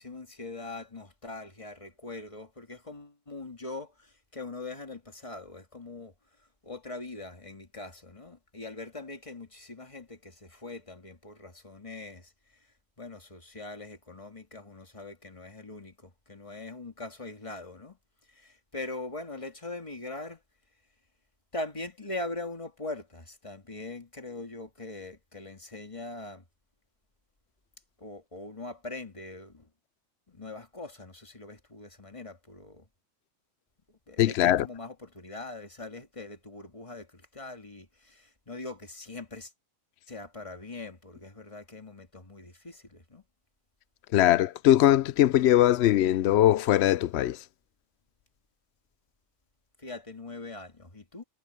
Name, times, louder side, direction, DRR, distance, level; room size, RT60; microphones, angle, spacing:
voice 1, 0.0-6.1 6.6-12.3 13.0-18.0 18.3-20.4 21.5-26.4 28.0-29.7 30.3-32.9 34.1-39.5 40.1-43.2 49.8-51.3, left 2 dB, 25° left, 1.9 m, -42 dB
voice 2, 34.2-34.7 44.1-47.4, left 13 dB, 65° left, 0.7 m, -21 dB
omnidirectional pair, 1.4 m